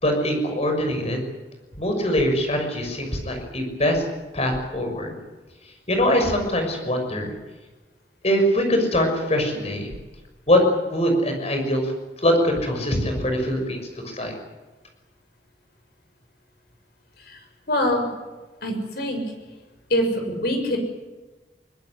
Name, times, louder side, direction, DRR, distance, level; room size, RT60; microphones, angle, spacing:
voice 1, 0.0-1.2 1.7-4.0 4.3-5.1 5.9-7.3 8.2-9.9 10.5-10.6 10.9-11.9 12.2-13.8 14.1-14.3, equal, 35° left, 4 dB, 6.3 m, -22 dB
voice 2, 17.7-18.1 18.6-19.2 19.9-20.8, left 1 dB, 60° left, 5 dB, 6.6 m, -24 dB
22.5 x 20.5 x 9.8 m, 1.2 s
head